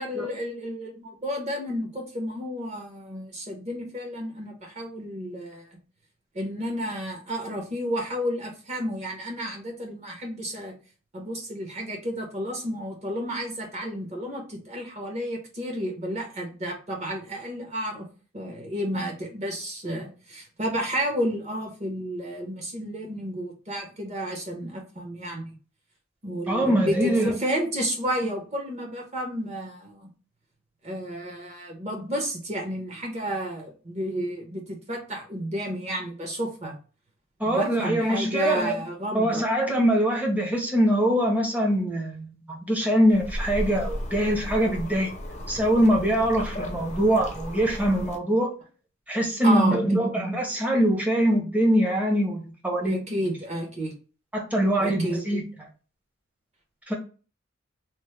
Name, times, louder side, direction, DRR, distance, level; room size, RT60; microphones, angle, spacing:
voice 1, 0.0-5.7 6.3-10.8 11.1-18.1 18.3-25.5 26.2-30.1 30.8-36.7 37.4-39.4 49.4-50.1 52.8-53.9 54.8-55.2, equal, 35° right, 0 dB, 0.9 m, -31 dB
voice 2, 26.5-27.3 37.4-38.7 39.1-45.1 45.5-48.5 49.1-53.0 54.3-55.4 56.9-57.0, equal, 10° right, 0 dB, 0.7 m, -23 dB
sound 1, 43.1-48.2, equal, 35° left, 0.5 m, -35 dB
3.1 x 2.1 x 3.1 m, 0.36 s
head